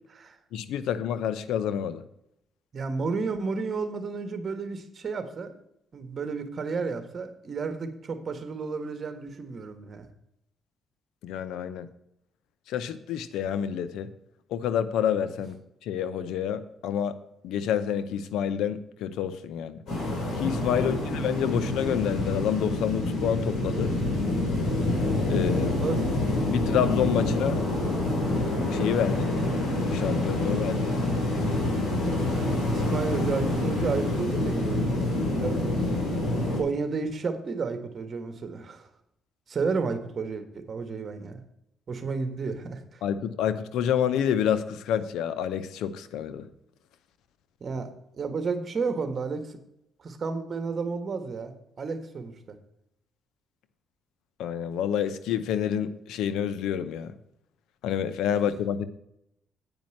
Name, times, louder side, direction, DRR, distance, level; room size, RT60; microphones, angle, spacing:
voice 1, 0.5-2.0 11.2-11.9 12.7-14.1 14.5-15.6 15.8-17.1 17.4-19.8 20.3-24.0 25.3-26.0 26.5-27.6 28.7-29.3 29.9-31.1 43.0-46.5 54.4-57.1 57.8-58.9, left 9 dB, 85° left, 13 dB, 0.7 m, -28 dB
voice 2, 2.7-5.5 5.9-10.0 20.7-21.1 25.8-26.0 32.3-35.0 35.3-36.0 36.3-38.9 39.5-41.4 41.9-43.0 47.6-49.6 50.0-52.6, right 4 dB, 45° right, 9 dB, 1.6 m, -32 dB
sound 1, 19.9-36.6, left 1 dB, 60° left, 4.9 m, -27 dB
9.0 x 5.3 x 7.7 m, 0.79 s
cardioid pair, 90°, 0 cm